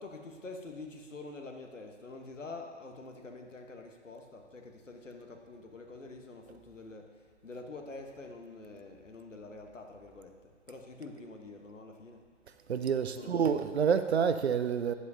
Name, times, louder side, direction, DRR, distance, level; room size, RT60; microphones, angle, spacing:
voice 1, 0.0-12.2 13.2-13.3, left 3 dB, 80° left, 1.2 m, -46 dB
voice 2, 12.7-14.9, right 7 dB, 60° right, 0.5 m, -28 dB
9.8 x 8.0 x 2.7 m
figure-of-eight pair, 130°, 37 cm